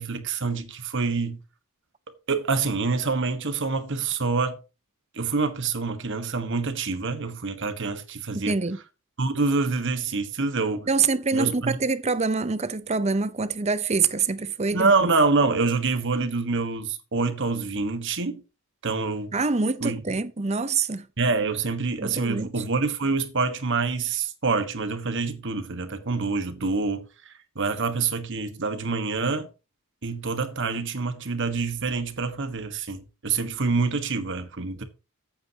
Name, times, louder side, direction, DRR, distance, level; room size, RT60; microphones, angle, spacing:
voice 1, 0.0-1.4 2.3-4.6 5.1-8.6 9.2-10.9 11.3-11.8 14.7-18.4 18.8-19.3 19.8-20.0 21.2-29.5 30.0-34.8, right 4 dB, 55° right, 1.4 m, -26 dB
voice 2, 8.3-8.8 10.9-15.1 19.3-21.1 22.0-22.5, right 4 dB, 30° right, 0.7 m, -25 dB
14.0 x 8.8 x 2.9 m
head